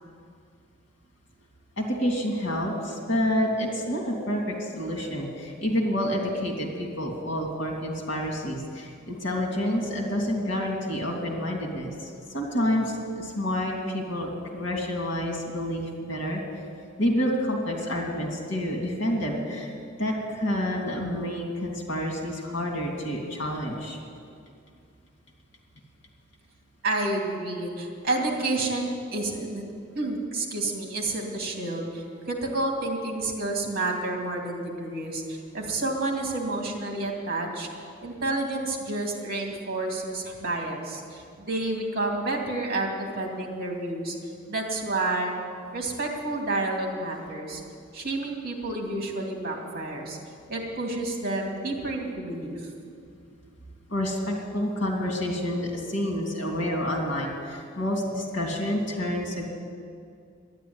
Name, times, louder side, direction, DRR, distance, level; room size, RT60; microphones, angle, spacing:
voice 1, 1.8-16.6 17.0-19.7 20.0-24.0 53.9-59.5, equal, 65° left, 0 dB, 2.8 m, -28 dB
voice 2, 26.8-29.6 29.9-37.7 38.0-44.2 44.5-45.3 45.7-47.6 47.9-50.2 50.5-52.7, right 2 dB, 50° right, 1 dB, 2.5 m, -30 dB
12.0 x 10.5 x 9.7 m, 2.3 s
head